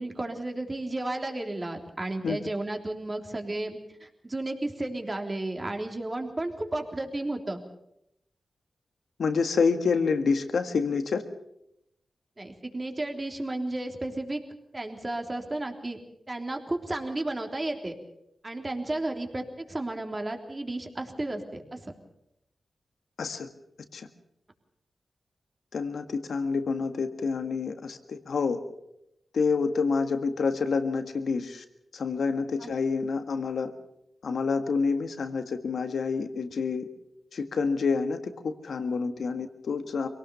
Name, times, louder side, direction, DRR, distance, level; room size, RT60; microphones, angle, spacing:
voice 1, 0.0-7.6 12.4-14.4 14.7-16.0 16.3-17.9 18.4-21.9 32.6-32.7, right 2 dB, 30° right, 3 dB, 3.4 m, -33 dB
voice 2, 9.2-11.2 23.2-23.5 23.9-24.1 25.7-28.6 29.3-31.6 31.9-33.7 34.2-36.9 37.3-40.1, left 5 dB, 80° left, 8 dB, 1.7 m, -28 dB
23.5 x 18.0 x 7.0 m, 0.80 s
cardioid pair, 50°, 0 cm